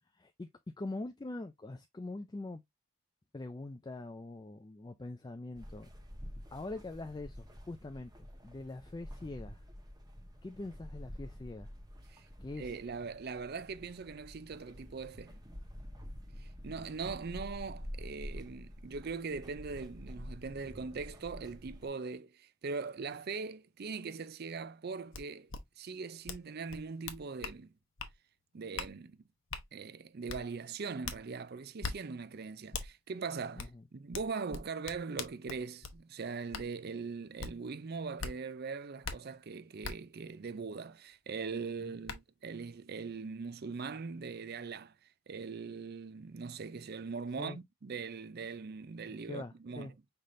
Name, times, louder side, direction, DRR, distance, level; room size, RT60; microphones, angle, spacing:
voice 1, 0.1-0.5 0.8-2.6 3.3-5.9 6.5-8.1 8.4-9.6 10.4-11.7 12.4-12.8 33.6-33.8 41.8-42.0 47.4-47.6 49.1-49.9, left 2 dB, 20° left, 0.3 m, -43 dB
sound 1, 5.5-21.9, equal, 20° right, 1.1 m, -48 dB
voice 2, 12.6-15.3 16.4-25.5 25.8-27.7 28.5-29.2 29.7-44.9 45.3-49.9, right 4 dB, 45° right, 0.4 m, -41 dB
sound 2, 25.1-25.2 25.5-25.6 26.3-26.4 26.7-27.6 28.0-28.1 28.8-28.9 29.5-29.6 30.3-30.4 31.0-31.2 31.8-32.0 32.7-32.9 33.6-33.7 34.1-36.0 36.5-36.7 37.4-37.5 38.2-38.3 39.0-39.2 39.8-39.9 41.4-41.5 42.1-42.2, left 5 dB, 60° left, 0.9 m, -40 dB
5.7 x 3.3 x 2.5 m
head